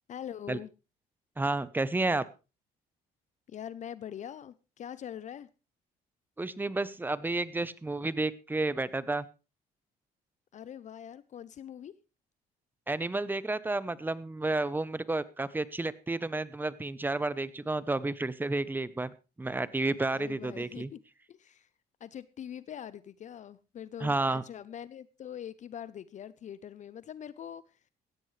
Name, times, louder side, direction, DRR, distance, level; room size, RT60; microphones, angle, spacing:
voice 1, 0.1-0.7 3.5-5.5 10.5-11.9 20.1-21.0 21.3-21.7 22.0-27.6, left 9 dB, 45° left, 0.6 m, -43 dB
voice 2, 1.4-2.3 6.4-9.3 12.9-19.1 19.4-20.9 24.0-24.4, right 2 dB, 10° right, 0.8 m, -31 dB
17.0 x 13.5 x 3.3 m
cardioid pair, 110°, 17 cm